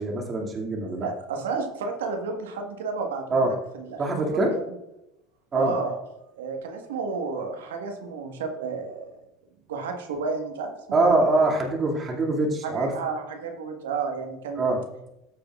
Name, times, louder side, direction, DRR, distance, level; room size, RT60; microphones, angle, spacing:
voice 1, 0.0-1.1 3.3-3.5 4.0-4.6 5.5-5.7 10.9-12.9 14.6-14.8, right 2 dB, 35° right, 0 dB, 2.3 m, -23 dB
voice 2, 1.0-4.0 4.5-4.6 5.5-6.0 6.4-9.1 9.7-11.1 12.6-14.7, right 4 dB, 80° right, 4 dB, 1.4 m, -32 dB
14.0 x 6.7 x 2.4 m, 0.86 s
hypercardioid pair, 75°, 0 cm